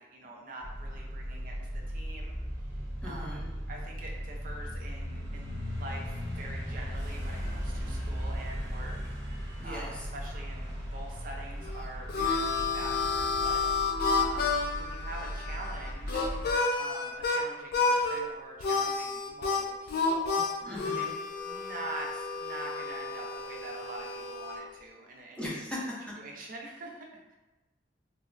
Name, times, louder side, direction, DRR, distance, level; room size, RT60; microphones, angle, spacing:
voice 1, 0.0-1.6 1.9-2.4 3.0-3.4 3.7-9.0 9.4-13.6 14.1-16.3 16.7-20.5 20.9-21.1 21.4-25.6 26.2-27.4, right 2 dB, 50° right, -1 dB, 0.5 m, -44 dB
sound 1, 0.6-16.5, equal, 70° right, 1.0 m, -37 dB
voice 2, 3.0-3.5 9.6-10.1 20.7-21.1 25.4-26.1, left 1 dB, 5° left, -5 dB, 0.5 m, -38 dB
Harmonica, 11.6-17.4 17.7-18.2 18.6-24.6, left 4 dB, 60° left, 0.3 m, -30 dB
3.2 x 2.0 x 2.4 m, 1.1 s
head